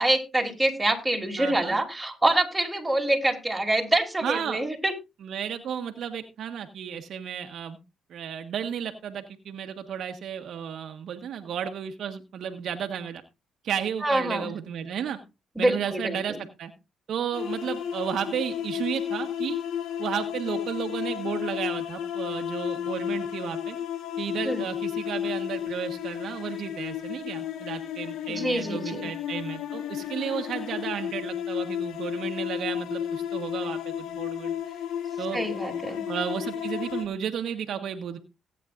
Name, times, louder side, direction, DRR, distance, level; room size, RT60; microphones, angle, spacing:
voice 1, 0.0-4.9 14.0-14.5 15.5-16.2 24.4-24.6 28.3-29.1 35.3-36.0, right 1 dB, 10° right, 2 dB, 3.2 m, -25 dB
voice 2, 1.4-1.8 4.2-4.6 5.2-7.8 8.1-13.2 13.6-15.2 15.6-16.7 17.1-19.6 20.0-23.8 24.2-34.5 35.2-35.4 36.1-38.2, right 8 dB, 70° right, 5 dB, 1.3 m, -33 dB
sound 1, 17.3-37.1, left 9 dB, 85° left, 1.3 m, -32 dB
18.0 x 9.2 x 2.6 m, 0.26 s
cardioid pair, 90°, 0 cm